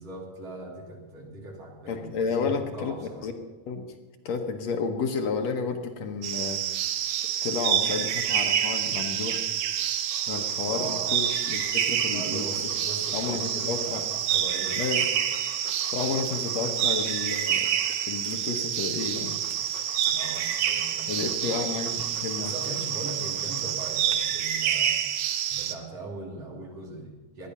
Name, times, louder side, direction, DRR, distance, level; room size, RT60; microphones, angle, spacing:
voice 1, 0.0-3.3 10.6-11.1 12.0-14.8 20.1-21.5 22.4-25.0 25.5-27.5, right 2 dB, 55° right, -2 dB, 4.0 m, -40 dB
voice 2, 1.9-3.0 3.2-3.3 3.7-3.9 4.3-6.6 7.4-9.4 10.3-12.7 13.1-14.0 14.8-15.1 15.9-17.7 18.1-19.5 21.1-22.6, left 5 dB, 70° left, 4 dB, 2.2 m, -31 dB
sound 1, 6.2-25.8, right 10 dB, 75° right, 2.0 m, -28 dB
Dog, 10.0-18.2 18.8-24.2, left 3 dB, 35° left, 1.0 m, -48 dB
19.0 x 12.0 x 5.6 m, 1.2 s
omnidirectional pair, 3.3 m